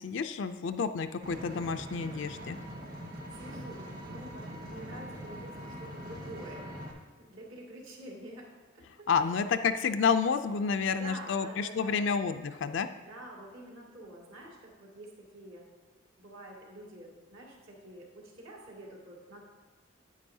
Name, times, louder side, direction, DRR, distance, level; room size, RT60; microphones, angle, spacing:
voice 1, 0.0-2.6 9.1-12.9, left 6 dB, 60° left, 8 dB, 0.4 m, -29 dB
Vehicle, 1.2-6.9, equal, 50° right, 1.4 m, -43 dB
voice 2, 3.3-6.7 7.2-8.8 9.2-9.4 10.9-12.1 13.0-15.6 16.2-19.4, right 1 dB, 75° right, -3 dB, 2.2 m, -48 dB
10.0 x 8.6 x 2.7 m, 1.3 s
head